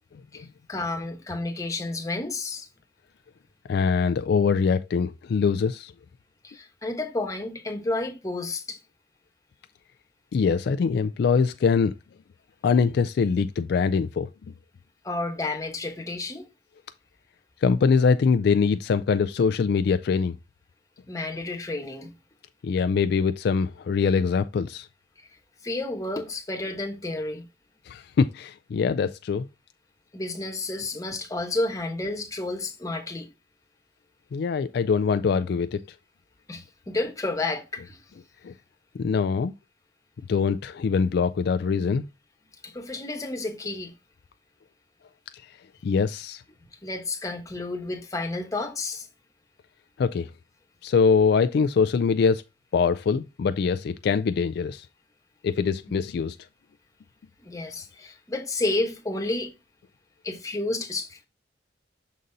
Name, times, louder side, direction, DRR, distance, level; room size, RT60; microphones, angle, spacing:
voice 1, 0.3-2.7 6.4-8.8 15.0-16.5 21.1-22.1 25.6-27.4 30.1-33.3 36.5-38.0 42.6-43.9 46.8-49.1 57.4-59.5 60.2-61.3, left 2 dB, 20° left, 1.1 m, -31 dB
voice 2, 3.7-5.9 10.3-11.9 12.6-14.3 17.6-20.4 22.6-24.9 27.9-29.5 34.3-35.8 38.4-38.5 38.9-39.5 40.3-42.0 45.8-46.4 50.0-50.3 50.8-52.4 52.7-54.9 55.4-56.4, left 5 dB, 60° left, 0.3 m, -23 dB
6.5 x 4.0 x 3.9 m
head